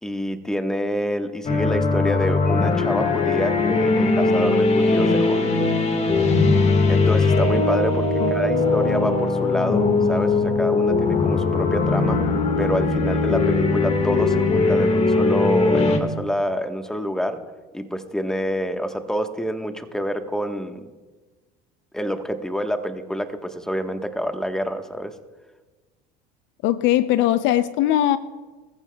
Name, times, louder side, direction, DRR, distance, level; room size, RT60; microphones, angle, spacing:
voice 1, 0.0-5.7 6.9-12.3 12.6-17.4 17.7-20.9 21.9-25.1, equal, 5° left, 6 dB, 1.3 m, -27 dB
sound 1, 1.5-16.0, left 3 dB, 30° left, 1.7 m, -20 dB
voice 2, 26.6-28.2, left 13 dB, 65° left, 14 dB, 0.6 m, -20 dB
24.0 x 14.5 x 2.3 m, 1.3 s
supercardioid pair, 85°, 20 cm